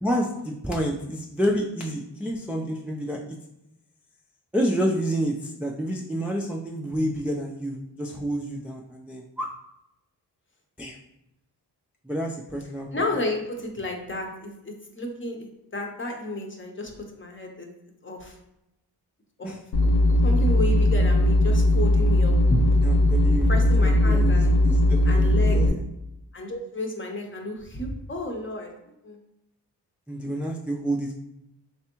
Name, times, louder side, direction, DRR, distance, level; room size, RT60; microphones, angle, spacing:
voice 1, 0.0-3.4 4.5-9.5 10.8-10.9 12.0-12.9 19.4-19.6 22.8-23.5 24.0-25.9 30.1-31.1, equal, 5° right, -2 dB, 0.3 m, -29 dB
voice 2, 12.9-17.7 18.0-18.4 19.4-19.5 20.2-22.6 23.5-24.5 25.0-25.6 26.3-28.7 29.0-29.2, left 1 dB, 30° left, 2 dB, 0.7 m, -32 dB
sound 1, 19.7-25.7, left 1 dB, 75° left, 0.6 m, -19 dB
3.3 x 3.3 x 3.0 m, 0.86 s
cardioid pair, 70°, 41 cm